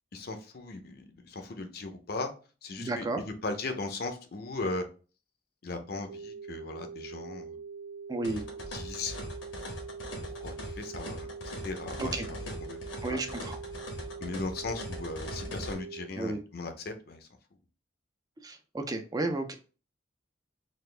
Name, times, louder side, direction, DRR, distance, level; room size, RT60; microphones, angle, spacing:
voice 1, 0.1-2.3 2.6-4.8 5.6-7.6 8.7-9.2 10.2-11.3 11.6-12.8 13.0-13.2 14.2-17.3, left 3 dB, 55° left, 6 dB, 0.6 m, -38 dB
voice 2, 2.8-3.2 8.1-8.4 12.0-12.3 13.0-13.6 16.2-16.4 18.4-19.5, right 2 dB, 20° right, 6 dB, 0.3 m, -32 dB
sound 1, 6.1-16.1, right 5 dB, 85° right, 0.8 m, -43 dB
sound 2, 8.2-15.7, left 1 dB, 80° left, 1.1 m, -41 dB
4.1 x 2.5 x 3.2 m, 0.36 s
head